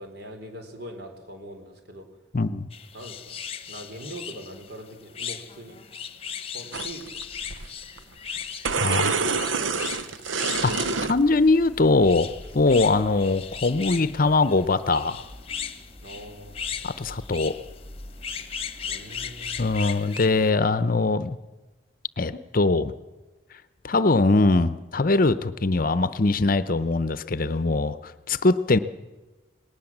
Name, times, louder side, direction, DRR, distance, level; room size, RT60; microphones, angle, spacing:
voice 1, 0.0-2.1 2.9-3.3 3.7-5.9 6.3-7.0 8.7-10.2 12.8-13.0 16.0-16.9 18.9-19.7, right 1 dB, 55° right, 5 dB, 3.8 m, -42 dB
voice 2, 2.3-2.7 8.8-9.1 10.6-15.2 16.8-17.6 19.6-21.4 22.2-22.9 23.8-28.8, left 3 dB, 45° left, 14 dB, 0.7 m, -22 dB
sound 1, 2.7-20.5, left 7 dB, 30° left, 1.1 m, -37 dB
sound 2, 6.7-7.7 8.0-8.1 8.4-11.2 11.8-12.3 12.7-13.0 13.3-13.4, right 5 dB, 85° right, 0.8 m, -27 dB
sound 3, 10.5-19.8, equal, 35° right, 4.4 m, -46 dB
19.5 x 18.5 x 7.3 m, 1.2 s
head